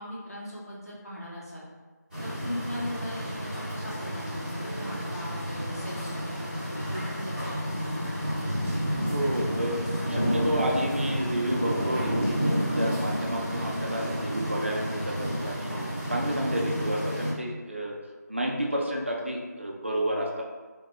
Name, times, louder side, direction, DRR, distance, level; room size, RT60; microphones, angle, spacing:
voice 1, 0.0-1.6 2.2-8.3, left 1 dB, 55° left, -7 dB, 1.0 m, -39 dB
sound 1, 2.1-17.3, equal, ahead, 0.7 m, -30 dB
voice 2, 9.0-9.8 10.1-12.4 12.7-15.7 16.1-17.9 18.3-20.4, right 1 dB, 40° right, -1 dB, 0.4 m, -30 dB
2.2 x 2.2 x 2.8 m, 1.4 s
figure-of-eight pair, 175°, 10 cm